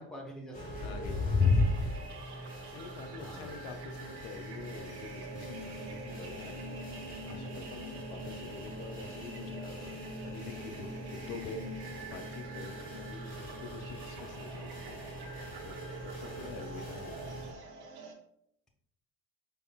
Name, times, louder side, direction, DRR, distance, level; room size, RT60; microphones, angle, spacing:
voice 1, 0.0-1.0 3.1-3.6 16.2-16.5, equal, ahead, -1 dB, 0.8 m, -47 dB
sound 1, 0.5-17.5, left 2 dB, 20° left, 1.4 m, -37 dB
voice 2, 0.8-17.4, left 5 dB, 65° left, 6 dB, 0.6 m, -47 dB
sound 2, 1.4-18.1, right 1 dB, 55° right, 0.8 m, -46 dB
4.8 x 2.6 x 2.3 m, 0.72 s
figure-of-eight pair, 55°, 46 cm